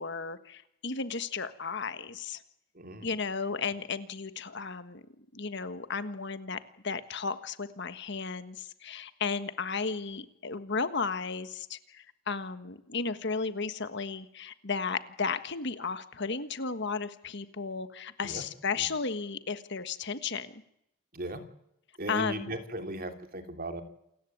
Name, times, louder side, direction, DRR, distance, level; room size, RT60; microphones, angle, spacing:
voice 1, 0.0-2.4 3.0-5.0 5.3-20.6 22.1-22.5, left 5 dB, 55° left, 11 dB, 1.5 m, -34 dB
voice 2, 2.7-3.1 18.2-18.5 18.8-18.9 21.1-21.4 22.0-23.8, right 1 dB, 40° right, 6 dB, 3.0 m, -37 dB
28.5 x 15.5 x 9.5 m, 0.78 s
head